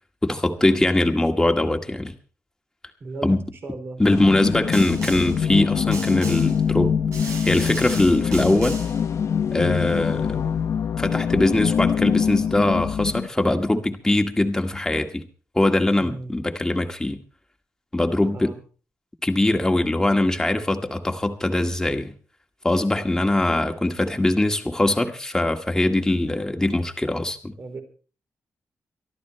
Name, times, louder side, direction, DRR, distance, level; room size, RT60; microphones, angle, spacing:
voice 1, 0.2-2.2 3.2-3.4 4.0-7.0 7.4-8.8 9.5-10.5 11.0-15.2 15.5-17.2 17.9-18.5 19.2-22.1 22.6-27.5, left 1 dB, 10° left, 4 dB, 1.9 m, -22 dB
voice 2, 3.0-3.4 3.6-4.0 16.0-16.3 18.3-18.6 27.6-27.8, right 3 dB, 45° right, 5 dB, 3.8 m, -36 dB
sound 1, 4.0-13.3, left 7 dB, 60° left, 0.8 m, -24 dB
Snare drum, 4.7-5.4 5.9-6.6 7.1-9.0, right 3 dB, 80° right, 7.9 m, -36 dB
23.5 x 13.5 x 3.2 m, 0.39 s
cardioid pair, 115°, 5 cm